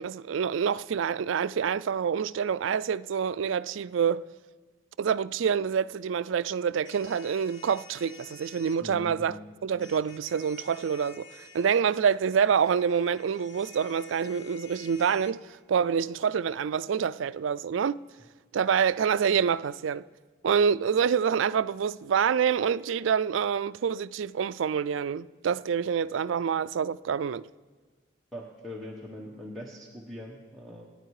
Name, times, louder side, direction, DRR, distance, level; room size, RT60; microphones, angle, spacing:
voice 1, 0.0-4.3 5.0-11.3 11.5-15.4 15.7-18.0 18.5-20.0 20.4-27.5, right 7 dB, 80° right, 0.4 m, -27 dB
sound 1, 6.8-8.8 9.8-15.3, left 6 dB, 75° left, 1.2 m, -51 dB
voice 2, 8.8-9.5 28.3-30.9, left 1 dB, ahead, 1.2 m, -42 dB
26.5 x 9.7 x 4.8 m
head